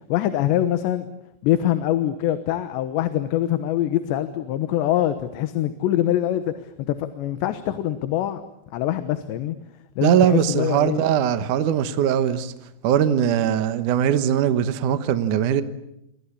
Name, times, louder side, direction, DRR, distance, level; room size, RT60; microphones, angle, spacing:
voice 1, 0.1-1.1 1.4-8.4 8.7-9.6 10.0-11.0, left 12 dB, 90° left, 3.5 m, -24 dB
voice 2, 10.0-12.5 12.8-15.6, right 9 dB, 65° right, 2.2 m, -20 dB
28.5 x 24.0 x 8.6 m
omnidirectional pair, 4.9 m